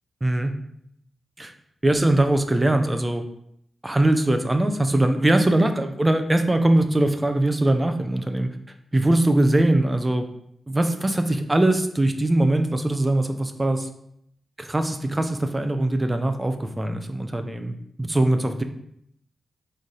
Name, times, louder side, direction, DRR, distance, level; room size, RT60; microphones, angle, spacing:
voice 1, 0.2-0.5 1.4-1.5 1.8-3.2 3.8-8.5 8.9-10.3 10.7-13.9 14.6-18.6, right 1 dB, 15° right, 7 dB, 0.5 m, -21 dB
4.0 x 3.2 x 3.8 m, 0.73 s
cardioid pair, 90°, 0 cm